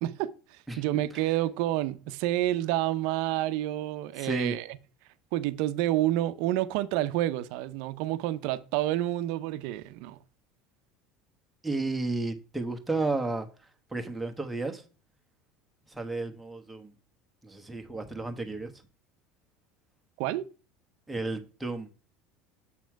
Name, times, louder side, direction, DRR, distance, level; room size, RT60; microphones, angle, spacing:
voice 1, 0.0-4.7 5.3-10.2 20.2-20.5, right 14 dB, 70° right, 0.5 m, -29 dB
voice 2, 4.2-4.6 11.6-13.5 13.9-14.8 15.9-16.9 17.4-18.7 21.1-21.9, right 3 dB, 5° right, 1.1 m, -32 dB
7.3 x 4.3 x 4.6 m
supercardioid pair, 125°, 0 cm